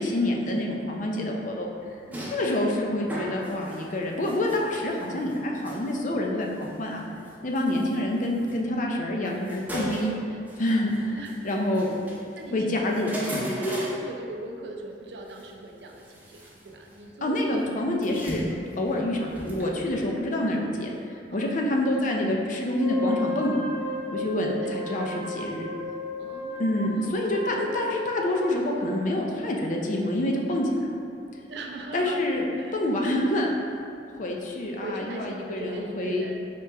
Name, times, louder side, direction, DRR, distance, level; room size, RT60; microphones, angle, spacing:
voice 1, 0.0-1.7 2.3-7.0 7.4-10.1 10.6-11.9 12.5-13.1 17.2-18.4 18.8-23.6 24.1-25.6 26.6-30.9 31.9-33.5 34.1-36.3, left 1 dB, 45° left, 0 dB, 0.5 m, -27 dB
sound 1, 1.9-14.0 15.3-15.4 15.8-17.2 17.5-19.9, equal, 10° right, 0.7 m, -38 dB
voice 2, 11.2-11.6 12.3-17.6 21.3-21.7 24.3-25.1 26.2-27.5 31.5-32.2 32.6-32.8 34.8-36.4, right 2 dB, 70° right, 2 dB, 0.4 m, -40 dB
Wind instrument woodwind instrument, 22.7-28.3, left 2 dB, 85° left, 1.1 m, -34 dB
4.4 x 2.9 x 3.4 m, 2.5 s
head